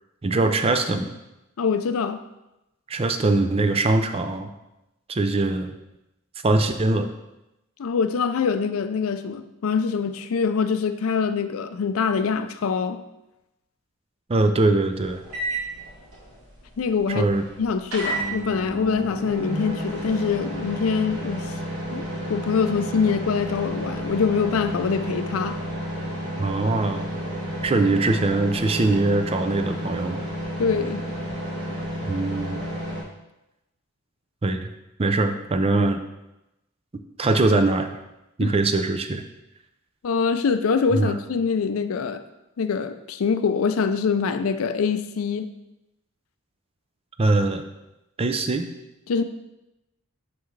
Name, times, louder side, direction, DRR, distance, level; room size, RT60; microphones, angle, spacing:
voice 1, 0.2-1.1 2.9-4.5 5.1-5.7 6.4-7.1 14.3-15.2 17.1-17.4 26.4-27.1 27.6-30.2 32.1-32.6 34.4-34.7 35.0-36.0 37.2-37.9 38.4-39.2 40.9-41.2 47.2-47.6 48.2-48.7, right 2 dB, 30° right, 7 dB, 0.4 m, -22 dB
voice 2, 1.6-2.2 7.8-13.0 16.8-17.3 17.6-21.5 21.9-22.0 22.3-25.6 30.6-31.0 38.4-38.5 40.0-42.2 42.6-45.5 49.1-49.2, left 5 dB, 80° left, 10 dB, 0.4 m, -24 dB
sound 1, 14.9-33.0, equal, 80° right, 2.4 m, -31 dB
6.3 x 5.7 x 3.2 m, 0.94 s
head